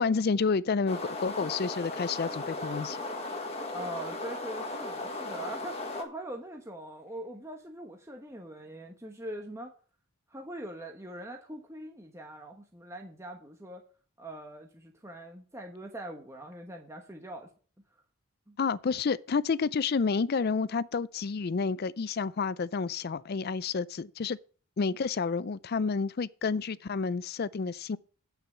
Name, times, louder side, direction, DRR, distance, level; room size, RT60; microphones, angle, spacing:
voice 1, 0.0-3.0 18.6-24.4 24.8-28.0, left 5 dB, 45° left, 0.4 m, -30 dB
sound 1, 0.9-6.0, left 2 dB, 30° left, 1.6 m, -36 dB
voice 2, 3.7-9.7 10.3-13.8 14.2-17.5 18.5-18.6, right 1 dB, 15° right, 1.1 m, -42 dB
8.8 x 5.7 x 6.9 m
head